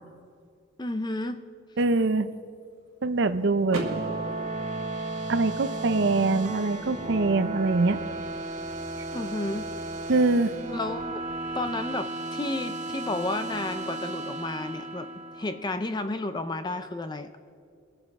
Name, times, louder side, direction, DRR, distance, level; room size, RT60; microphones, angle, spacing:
voice 1, 0.8-1.4 9.1-9.7 10.7-11.2 11.5-15.1 15.3-17.3, left 2 dB, 20° left, 9 dB, 0.5 m, -32 dB
voice 2, 1.8-2.3 3.0-4.0 5.3-8.0 10.1-10.5, right 3 dB, 55° right, 12 dB, 0.6 m, -24 dB
sound 1, 3.4-15.8, right 2 dB, 40° right, 1.0 m, -34 dB
Car / Door, 3.7-5.6, right 1 dB, 75° right, 2.0 m, -37 dB
24.0 x 8.8 x 3.6 m, 2.3 s
head